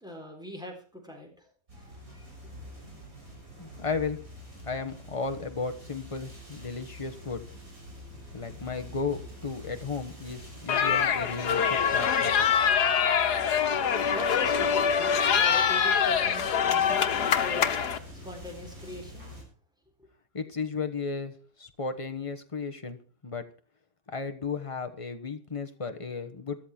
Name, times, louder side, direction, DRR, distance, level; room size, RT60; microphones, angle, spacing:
voice 1, 0.0-2.3 13.5-17.9 18.2-19.3, left 1 dB, ahead, 1 dB, 3.8 m, -42 dB
sound 1, 1.7-19.4, left 1 dB, 60° right, 7.3 m, -46 dB
voice 2, 3.6-4.2 4.6-7.4 8.3-12.7 20.3-23.0 23.2-23.4 24.1-26.6, left 4 dB, 20° left, 6 dB, 1.2 m, -34 dB
sound 2, 10.7-18.0, left 7 dB, 85° left, 1.7 m, -24 dB
sound 3, 12.6-16.8, right 2 dB, 35° right, 6.7 m, -47 dB
13.5 x 12.5 x 4.5 m, 0.41 s
omnidirectional pair, 1.7 m